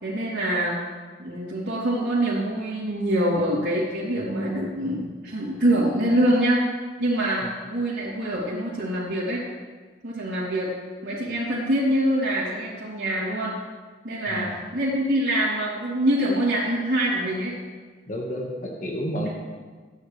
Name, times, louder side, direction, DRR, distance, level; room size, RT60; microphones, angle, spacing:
voice 1, 0.0-0.8 1.2-6.6 7.0-9.4 10.0-10.7 11.0-13.6 14.0-17.6 19.2-19.3, right 1 dB, 75° right, -10 dB, 3.5 m, -25 dB
voice 2, 18.1-19.3, equal, 40° left, -2 dB, 1.8 m, -30 dB
22.5 x 9.8 x 3.5 m, 1.5 s
head